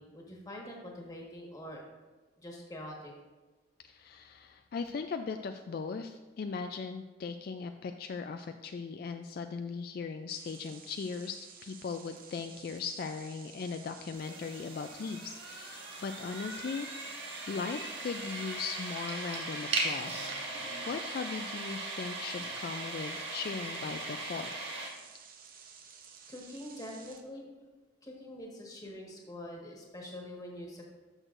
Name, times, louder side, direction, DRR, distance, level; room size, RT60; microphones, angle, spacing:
voice 1, 0.0-1.8 2.4-3.1 26.3-27.4 28.0-30.9, left 1 dB, 20° left, -1 dB, 1.5 m, -45 dB
voice 2, 3.8-16.9 17.5-24.5, left 5 dB, 55° left, 7 dB, 0.3 m, -39 dB
sound 1, 10.3-27.2, right 6 dB, 50° right, 0.8 m, -53 dB
sound 2, 14.1-24.9, right 2 dB, 85° right, 1.7 m, -38 dB
12.5 x 6.3 x 2.5 m, 1.3 s
head